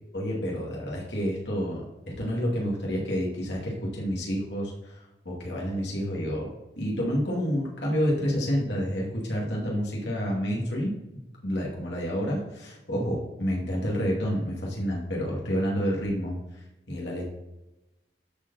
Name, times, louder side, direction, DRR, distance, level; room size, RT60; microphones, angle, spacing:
voice 1, 0.1-6.5 6.8-10.9 11.4-17.3, equal, 80° left, -3 dB, 2.5 m, -29 dB
13.0 x 4.7 x 4.1 m, 0.97 s
head